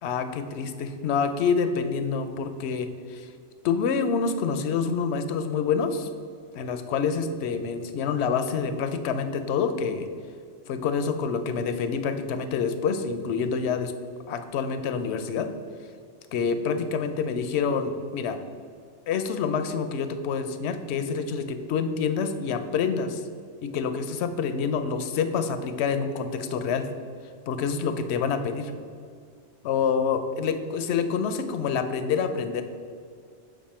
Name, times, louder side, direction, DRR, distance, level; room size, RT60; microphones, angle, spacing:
voice 1, 0.0-3.3 3.6-6.1 6.5-10.1 10.7-13.9 14.3-15.5 16.3-18.4 19.1-23.2 23.6-26.8 27.5-28.7 29.6-32.6, left 6 dB, 70° left, 9 dB, 0.8 m, -27 dB
7.3 x 5.4 x 4.3 m, 2.3 s
omnidirectional pair, 1.2 m